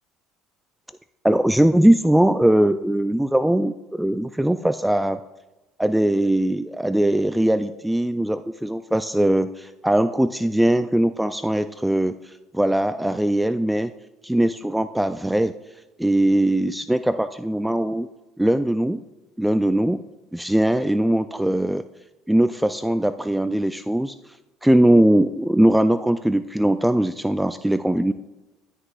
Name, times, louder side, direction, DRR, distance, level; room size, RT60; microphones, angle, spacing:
voice 1, 1.2-5.2 5.8-12.1 12.5-13.9 14.2-15.5 16.0-18.1 18.4-19.0 19.4-20.0 20.3-21.8 22.3-24.1 24.6-28.1, right 1 dB, 5° right, 10 dB, 0.3 m, -20 dB
11.0 x 9.9 x 2.4 m, 1.0 s
cardioid pair, 110°, 0 cm